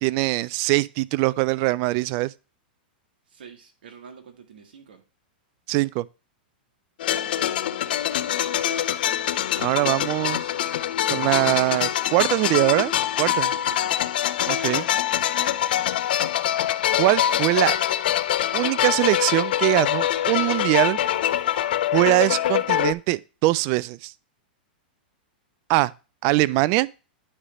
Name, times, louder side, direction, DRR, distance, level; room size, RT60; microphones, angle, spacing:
voice 1, 0.0-2.3 5.7-6.0 9.6-10.5 11.1-12.9 13.2-13.5 14.5-14.9 17.0-17.7 18.5-21.0 21.9-24.1 25.7-25.9 26.2-26.9, right 20 dB, 45° right, 0.3 m, -22 dB
voice 2, 3.3-5.0 7.0-7.7 8.1-8.6 13.7-14.2, right 7 dB, 75° right, 1.6 m, -47 dB
sound 1, 7.0-22.9, left 11 dB, 70° left, 0.5 m, -24 dB
9.9 x 3.3 x 4.9 m
hypercardioid pair, 120°, 5 cm